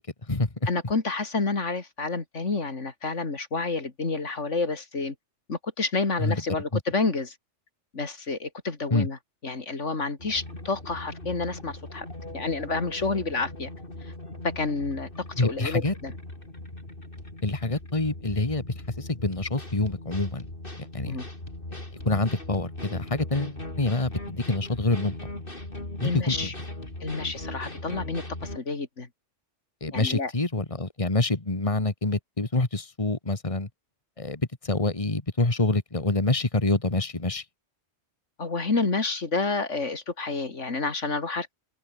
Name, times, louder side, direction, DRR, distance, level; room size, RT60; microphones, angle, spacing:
voice 1, 0.7-5.1 5.5-7.3 7.9-9.2 9.4-12.1 12.3-13.7 14.0-14.1 14.4-15.1 15.4-16.1 21.0-21.3 26.0-26.5 27.0-29.1 29.9-30.3 38.4-41.5, left 3 dB, 80° left, 3.1 m, -29 dB
sound 1, 10.2-28.6, left 1 dB, 45° left, 5.6 m, -39 dB
voice 2, 15.4-15.9 17.4-18.6 19.0-20.4 20.8-21.2 22.1-25.2 26.0-26.5 29.8-33.7 34.2-37.4, left 2 dB, 30° left, 2.3 m, -26 dB
open air
omnidirectional pair, 1.2 m